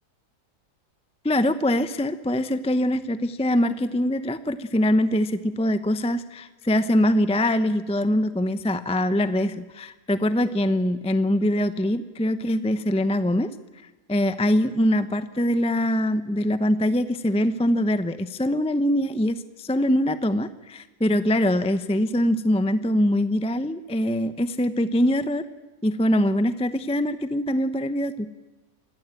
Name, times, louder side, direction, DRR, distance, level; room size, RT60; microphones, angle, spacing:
voice 1, 1.2-13.5 14.1-25.4 25.8-28.3, left 1 dB, 5° left, 12 dB, 0.7 m, -23 dB
28.0 x 21.5 x 9.1 m, 1.2 s
omnidirectional pair, 1.6 m